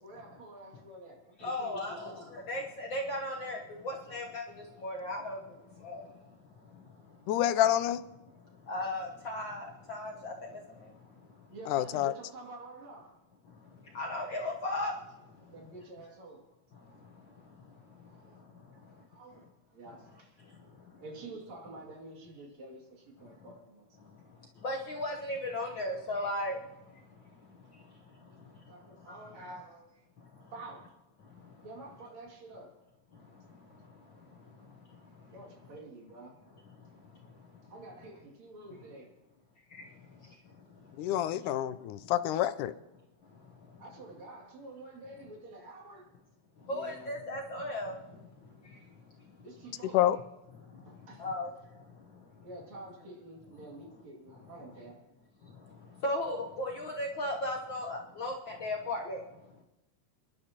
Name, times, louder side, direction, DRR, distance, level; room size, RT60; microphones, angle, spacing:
voice 1, 0.0-2.3 11.5-13.2 15.5-16.5 18.1-18.4 19.1-19.5 19.7-20.4 21.0-23.9 28.7-30.1 30.5-30.9 31.6-32.7 35.3-36.4 37.7-39.1 43.8-46.1 46.6-47.1 49.4-50.2 50.8-51.3 52.4-55.0, right 2 dB, 60° right, -1 dB, 3.7 m, -48 dB
voice 2, 1.4-7.3 8.3-11.5 13.5-15.5 16.8-19.0 20.4-21.0 23.2-23.4 24.0-29.2 30.2-30.5 31.2-31.6 33.1-35.3 36.8-37.7 39.7-41.8 43.2-43.8 46.6-49.4 50.6-52.5 55.4-59.6, left 1 dB, 60° left, 0 dB, 1.2 m, -39 dB
voice 3, 7.3-8.0 11.7-12.1 41.0-42.7 49.9-50.2, left 12 dB, 85° left, 14 dB, 2.1 m, -27 dB
29.5 x 11.5 x 2.9 m, 0.99 s
omnidirectional pair, 3.5 m